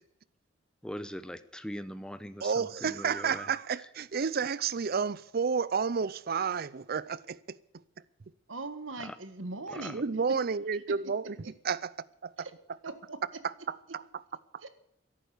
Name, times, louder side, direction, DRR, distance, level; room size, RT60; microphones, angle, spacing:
voice 1, 0.8-3.5 9.0-9.2 9.7-9.9, equal, 5° left, 0.8 m, -41 dB
voice 2, 2.4-7.6 9.9-11.4 11.6-12.5 13.4-14.2, right 5 dB, 50° right, 0.5 m, -31 dB
voice 3, 8.5-10.0 12.4-12.5 12.8-13.4 14.6-14.7, right 3 dB, 90° right, 1.6 m, -40 dB
13.5 x 11.0 x 8.3 m
head